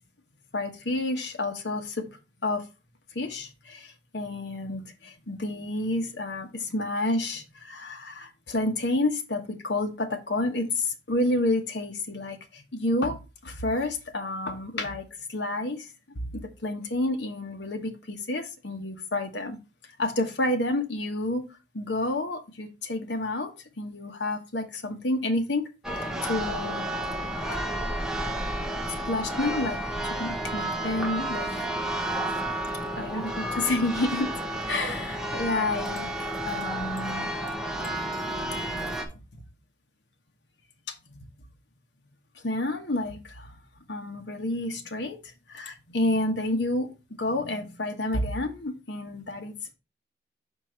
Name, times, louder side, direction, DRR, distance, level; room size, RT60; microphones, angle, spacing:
voice 1, 0.5-2.6 3.1-19.6 20.0-21.5 21.7-25.6 26.2-26.8 29.1-29.8 30.1-31.5 33.0-36.1 36.5-37.3 40.9-41.0 42.4-43.5 43.9-45.2 45.5-46.9 47.2-49.7, left 2 dB, 70° left, 5 dB, 1.2 m, -30 dB
Church bell, 25.8-39.1, right 1 dB, 5° right, 0.9 m, -31 dB
6.3 x 4.4 x 4.4 m, 0.28 s
head